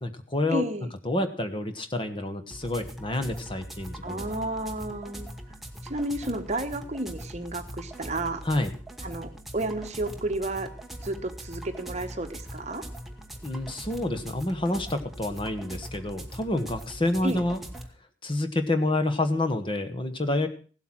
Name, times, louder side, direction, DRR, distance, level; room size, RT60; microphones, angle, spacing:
voice 1, 0.0-0.6 1.0-4.3 8.4-8.7 13.4-17.6 18.2-20.5, left 2 dB, 25° left, 8 dB, 1.1 m, -28 dB
voice 2, 0.5-0.9 4.0-5.3 5.9-8.4 9.0-10.7 11.0-12.8 17.2-17.4, right 2 dB, 35° right, 7 dB, 1.2 m, -32 dB
sound 1, 2.5-17.9, right 1 dB, ahead, 1.0 m, -41 dB
16.0 x 8.1 x 6.1 m, 0.40 s
head